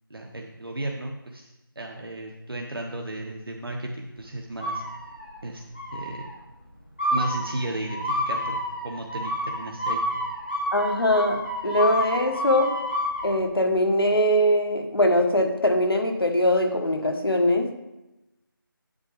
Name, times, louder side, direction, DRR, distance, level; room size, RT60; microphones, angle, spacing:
voice 1, 0.1-1.5 1.7-4.8 5.4-5.6 5.9-6.3 7.1-8.6 8.8-10.0, right 1 dB, 80° right, 0 dB, 1.2 m, -34 dB
sound 1, 4.6-5.4 5.7-6.3 7.0-13.3, equal, 25° left, 1.5 m, -29 dB
voice 2, 10.7-12.8 13.2-17.7, left 1 dB, 85° left, 4 dB, 1.4 m, -22 dB
8.8 x 8.2 x 3.4 m, 0.96 s
figure-of-eight pair, 180°, 12 cm